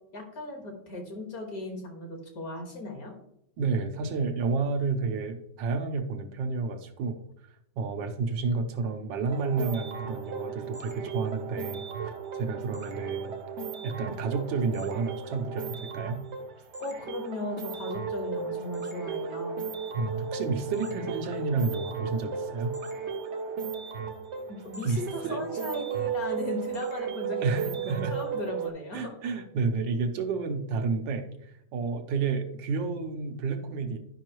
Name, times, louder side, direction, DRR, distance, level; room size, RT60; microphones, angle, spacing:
voice 1, 0.1-3.1 16.8-19.6 24.6-29.1, left 2 dB, 55° left, 2 dB, 2.0 m, -37 dB
voice 2, 3.6-7.2 7.8-13.4 13.8-16.2 20.0-22.8 24.8-25.4 27.4-28.2 28.9-34.0, right 4 dB, 85° right, 6 dB, 1.5 m, -30 dB
sound 1, 9.3-28.7, right 6 dB, 55° right, 0.8 m, -35 dB
10.5 x 5.5 x 3.0 m, 0.75 s
omnidirectional pair, 1.9 m